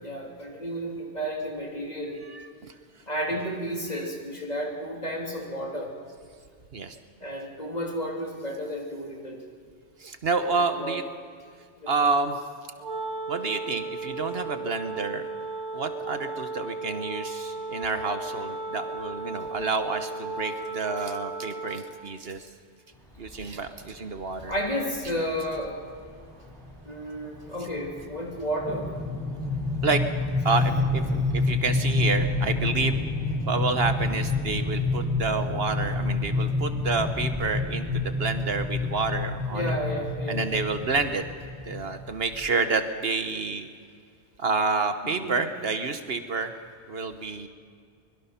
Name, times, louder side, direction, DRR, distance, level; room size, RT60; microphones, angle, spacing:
voice 1, 0.0-2.2 3.1-5.9 7.2-9.4 10.5-11.0 11.8-12.1 24.5-25.7 26.9-29.0 39.5-40.4 45.0-45.4, equal, 35° left, 0 dB, 3.2 m, -32 dB
voice 2, 2.3-2.7 6.7-7.0 10.0-11.0 11.9-12.4 13.3-15.3 15.7-22.4 23.2-24.5 29.8-30.0 30.4-33.0 33.5-39.8 40.3-41.2 41.7-43.7 44.4-46.5 46.9-47.5, right 4 dB, 60° right, 8 dB, 1.2 m, -29 dB
Wind instrument woodwind instrument, 12.8-22.0, right 3 dB, 90° right, 3.5 m, -35 dB
sound 1, 23.3-23.5 24.4-24.5 24.9-25.0 25.3-25.6 26.0-42.4, left 3 dB, 5° left, 6.5 m, -28 dB
24.0 x 22.0 x 5.8 m, 2.1 s
omnidirectional pair, 1.2 m